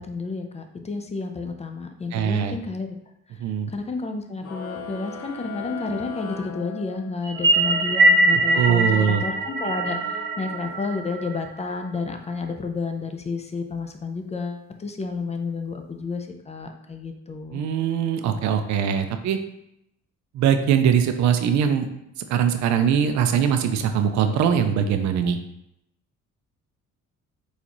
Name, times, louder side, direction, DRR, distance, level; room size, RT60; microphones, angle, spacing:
voice 1, 0.0-3.0 3.7-17.6, left 4 dB, 20° left, 5 dB, 0.4 m, -31 dB
voice 2, 2.1-2.5 3.4-3.7 8.5-9.2 17.5-19.4 20.3-21.9 22.3-25.4, right 8 dB, 70° right, 7 dB, 0.4 m, -21 dB
sound 1, 4.4-7.4, left 6 dB, 70° left, 0.8 m, -37 dB
sound 2, 7.2-11.8, right 2 dB, 35° right, 0.9 m, -22 dB
4.0 x 2.4 x 2.9 m, 0.81 s
cardioid pair, 90°, 30 cm